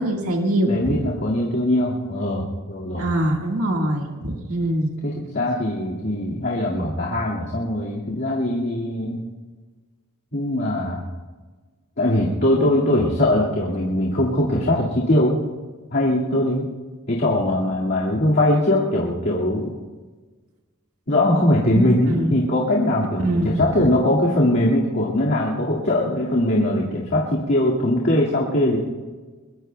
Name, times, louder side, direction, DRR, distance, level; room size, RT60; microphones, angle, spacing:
voice 1, 0.0-1.0 3.0-4.9 21.7-22.3 23.2-23.9, right 1 dB, 75° right, 1 dB, 1.7 m, -23 dB
voice 2, 0.7-3.0 5.0-9.2 10.3-11.0 12.0-15.4 15.9-16.7 17.1-19.7 21.1-28.8, left 1 dB, 50° left, -5 dB, 2.0 m, -21 dB
23.0 x 22.0 x 2.3 m, 1.4 s
head